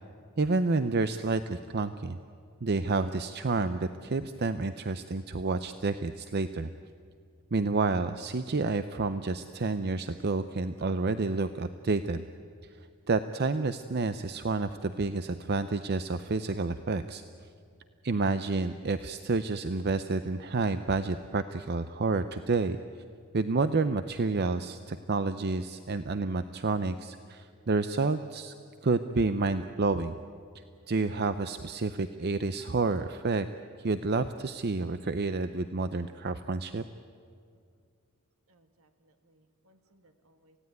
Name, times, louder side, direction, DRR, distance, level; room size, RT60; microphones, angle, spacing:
voice 1, 0.4-2.2 2.6-6.7 7.5-12.2 13.1-17.2 18.0-22.8 23.3-28.5 28.8-30.2 30.9-33.5 33.8-36.8, right 3 dB, 50° right, 10 dB, 0.6 m, -29 dB
voice 2, 38.5-40.6, right 1 dB, 70° right, 7 dB, 1.7 m, -66 dB
28.0 x 17.0 x 9.4 m, 2.3 s
head